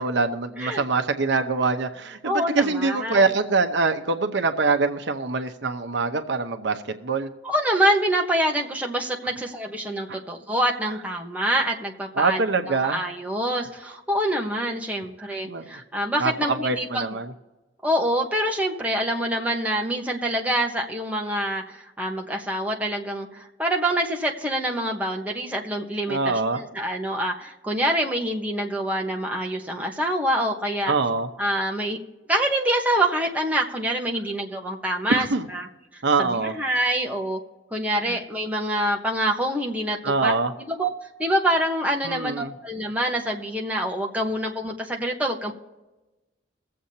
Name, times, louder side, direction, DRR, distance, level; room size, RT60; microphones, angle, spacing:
voice 1, 0.0-7.3 10.1-10.2 12.1-13.1 15.2-15.8 16.2-17.3 26.1-26.6 30.9-31.3 35.1-35.5 36.0-36.5 38.1-38.2 40.0-40.5 42.0-42.5, right 3 dB, 65° right, 6 dB, 0.8 m, -24 dB
voice 2, 2.2-3.3 7.4-12.4 12.7-17.2 17.8-26.2 26.5-30.9 31.4-32.0 32.3-35.7 35.9-37.4 37.7-40.3 40.6-45.5, right 1 dB, 10° right, 0 dB, 1.1 m, -26 dB
22.5 x 7.7 x 2.8 m, 1.1 s
head